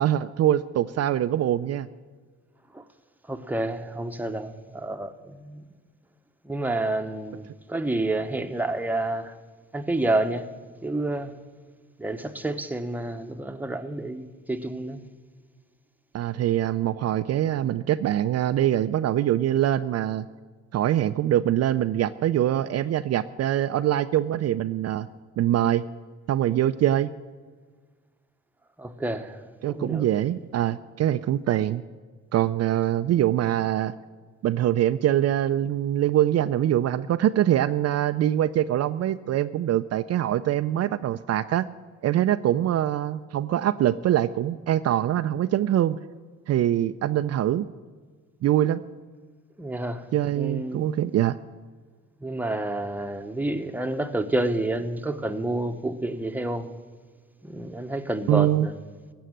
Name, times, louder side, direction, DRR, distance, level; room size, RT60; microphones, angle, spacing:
voice 1, 0.0-1.9 16.1-20.2 20.7-25.1 25.4-25.8 26.3-27.1 29.6-31.8 32.3-33.9 34.4-41.7 42.0-46.0 46.5-47.7 48.4-48.8 50.1-51.4 58.3-58.7, right 12 dB, 55° right, 0.4 m, -23 dB
voice 2, 3.3-5.7 6.4-9.3 9.7-10.5 10.8-11.3 12.0-15.0 28.8-30.1 49.6-50.1 50.3-50.9 52.2-56.7 57.4-58.7, right 2 dB, 5° right, 0.9 m, -29 dB
16.0 x 6.3 x 9.0 m
cardioid pair, 90°, 30 cm